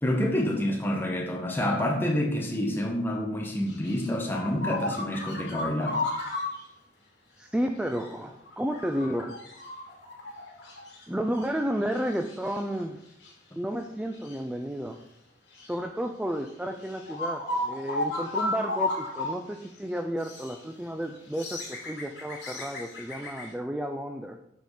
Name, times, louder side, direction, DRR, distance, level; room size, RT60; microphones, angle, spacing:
voice 1, 0.0-6.0, left 1 dB, 10° left, 1 dB, 1.2 m, -28 dB
sound 1, 3.7-6.6 7.9-8.1 8.4-11.0 11.4-11.5 11.9-12.6 13.2-13.3 14.1-14.4 15.6-15.7 16.5-16.6 16.8-19.3 19.6-19.7 20.2-20.6 21.2-23.5, left 2 dB, 70° left, 2.6 m, -34 dB
voice 2, 7.4-9.3 11.1-13.0 13.6-15.0 15.7-24.4, equal, 5° right, 5 dB, 0.3 m, -32 dB
8.1 x 4.4 x 4.9 m, 0.81 s
head